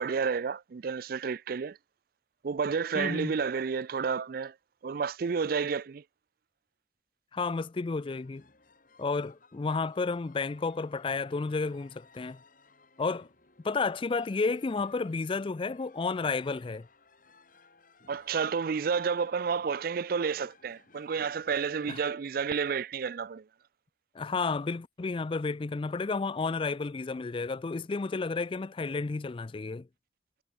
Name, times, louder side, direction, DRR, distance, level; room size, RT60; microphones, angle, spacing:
voice 1, 0.0-1.8 2.4-4.5 4.8-6.0 18.1-23.4, right 5 dB, 55° right, 0.4 m, -30 dB
voice 2, 2.9-3.3 7.3-8.4 9.0-12.4 13.0-13.3 13.6-16.9 21.9-22.0 24.1-29.9, left 4 dB, 30° left, 0.4 m, -31 dB
sound 1, 8.0-22.0, left 3 dB, 50° left, 6.3 m, -60 dB
head